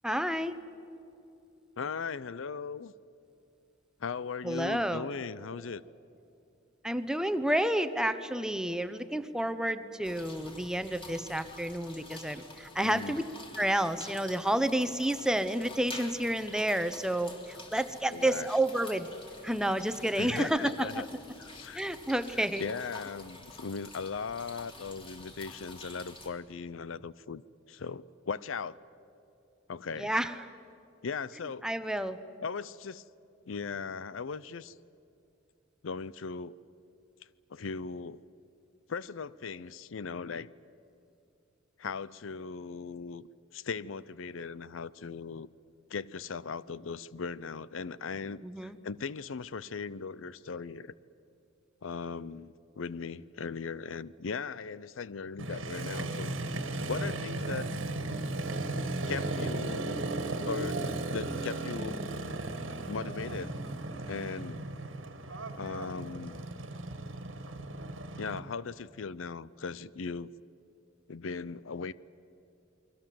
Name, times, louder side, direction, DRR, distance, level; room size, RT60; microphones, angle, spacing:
voice 1, 0.0-0.6 4.4-5.1 6.8-13.2 13.6-19.1 19.4-21.0 21.7-22.7 30.0-30.3 31.6-32.2 48.4-48.8, right 1 dB, 5° right, 11 dB, 0.9 m, -30 dB
voice 2, 1.8-2.9 4.0-5.8 12.8-13.2 18.1-18.5 20.2-21.1 21.4-21.8 22.3-27.4 27.7-28.8 29.7-30.1 31.0-31.7 32.4-33.0 33.5-34.8 35.8-36.6 37.5-38.2 38.9-40.5 41.8-43.3 43.5-45.5 45.9-50.9 51.8-56.3 56.7-57.7 59.1-60.0 60.4-62.0 62.9-63.6 64.1-64.7 65.6-66.5 68.2-70.3 71.1-71.9, left 5 dB, 85° left, 19 dB, 0.6 m, -38 dB
sound 1, 10.0-26.3, left 2 dB, 25° left, 3.1 m, -49 dB
Motorcycle, 55.4-68.4, right 2 dB, 80° right, 1.9 m, -36 dB
29.0 x 22.5 x 7.6 m, 2.8 s
head